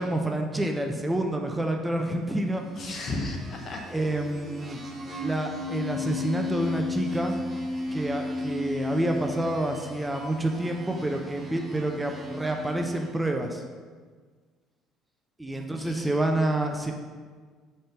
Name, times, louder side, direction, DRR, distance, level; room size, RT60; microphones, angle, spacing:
voice 1, 0.0-3.1 3.9-4.8 5.2-7.4 7.9-13.6 15.4-16.9, right 1 dB, 10° right, 3 dB, 0.7 m, -28 dB
sound 1, 2.4-13.3, left 3 dB, 30° right, 1.1 m, -35 dB
voice 2, 2.8-3.8 4.7-5.3 15.5-16.2, left 2 dB, 45° left, 2 dB, 1.1 m, -36 dB
5.1 x 4.3 x 5.8 m, 1.5 s
figure-of-eight pair, 55°, 0 cm